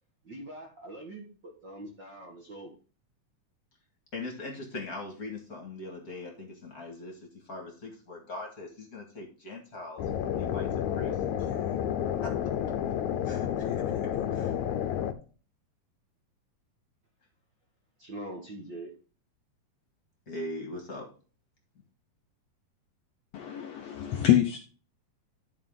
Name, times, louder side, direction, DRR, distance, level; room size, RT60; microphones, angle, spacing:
voice 1, 0.2-2.7 18.0-18.9, right 1 dB, 50° right, 0 dB, 1.5 m, -43 dB
voice 2, 4.1-12.4 13.2-14.5 20.3-21.1, left 2 dB, 35° left, 1 dB, 1.7 m, -41 dB
sound 1, 10.0-15.1, left 9 dB, 70° left, 1.9 m, -30 dB
voice 3, 23.3-24.6, left 11 dB, 90° left, 5 dB, 1.4 m, -25 dB
12.5 x 5.0 x 3.7 m, 0.36 s
omnidirectional pair, 4.0 m